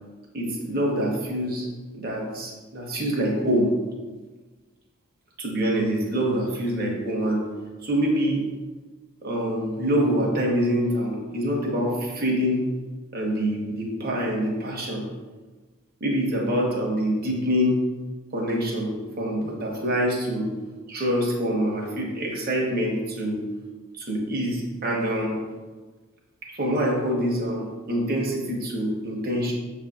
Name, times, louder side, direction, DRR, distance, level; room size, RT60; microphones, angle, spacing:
voice 1, 0.3-1.7 1.9-3.8 5.4-7.5 7.8-8.5 9.2-12.7 13.1-15.1 16.0-17.8 18.3-20.5 20.9-23.4 23.9-25.4 26.5-29.5, equal, 45° right, -2 dB, 0.8 m, -25 dB
6.6 x 2.6 x 2.2 m, 1.3 s
head